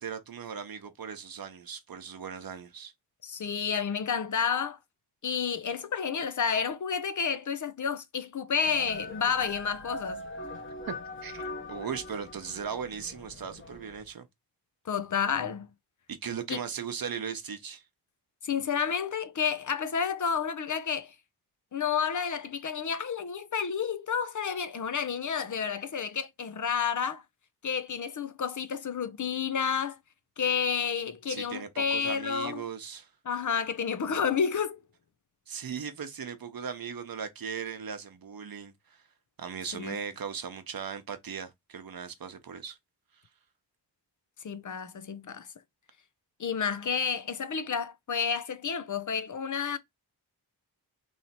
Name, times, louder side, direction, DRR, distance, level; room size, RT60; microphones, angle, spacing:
voice 1, 0.0-2.9 10.9-11.0 11.2-14.3 16.1-17.8 31.3-33.1 35.5-39.0 39.4-42.8, right 7 dB, 55° right, 0.9 m, -38 dB
voice 2, 3.2-4.8 5.2-10.2 14.9-15.7 16.5-16.6 18.4-21.1 21.7-27.2 27.6-30.0 30.4-32.6 33.3-34.8 39.7-40.0 44.4-45.5 46.4-49.8, left 6 dB, 45° left, 0.6 m, -30 dB
sound 1, 8.6-14.1, left 2 dB, 30° left, 0.9 m, -41 dB
3.2 x 2.8 x 4.2 m
wide cardioid pair, 90°, 41 cm